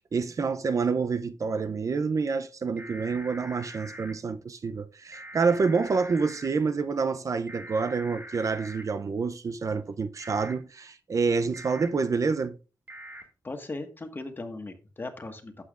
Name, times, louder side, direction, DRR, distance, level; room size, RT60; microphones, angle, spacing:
voice 1, 0.1-12.6, right 4 dB, 50° right, 0.5 m, -28 dB
sound 1, 2.8-4.1 5.1-6.5 7.5-8.8 10.2-10.5 11.5-11.9 12.9-13.2, equal, 25° right, 1.9 m, -43 dB
voice 2, 13.4-15.6, left 2 dB, 30° left, 1.6 m, -38 dB
11.5 x 8.6 x 2.5 m
wide cardioid pair, 110°, 7 cm